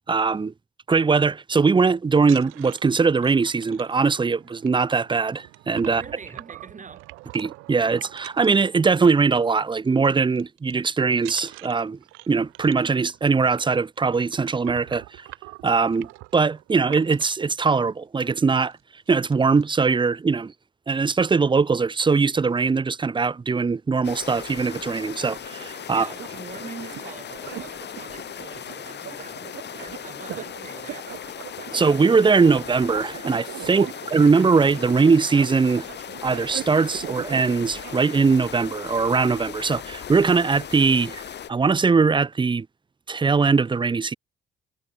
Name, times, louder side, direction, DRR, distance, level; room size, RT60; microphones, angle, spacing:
voice 1, 0.1-0.5 0.9-6.0 7.3-12.0 12.3-15.3 15.6-18.7 19.1-20.5 20.9-26.1 31.7-35.9 36.2-41.2 41.5-42.7 43.1-44.1, right 4 dB, 25° right, 0.7 m, -21 dB
sound 1, 2.2-9.3 9.6-9.9 10.1-10.7 11.2-17.5 18.2-18.3 18.6-18.8 19.1-19.6, right 23 dB, 90° right, 0.9 m, -44 dB
voice 2, 5.8-7.1 25.9-31.2 33.7-34.0, right 5 dB, 40° right, 4.3 m, -43 dB
sound 2, 24.0-41.5, left 9 dB, 60° left, 3.2 m, -38 dB
sound 3, 25.2-38.2, right 12 dB, 70° right, 2.2 m, -40 dB
supercardioid pair, 60°, 20 cm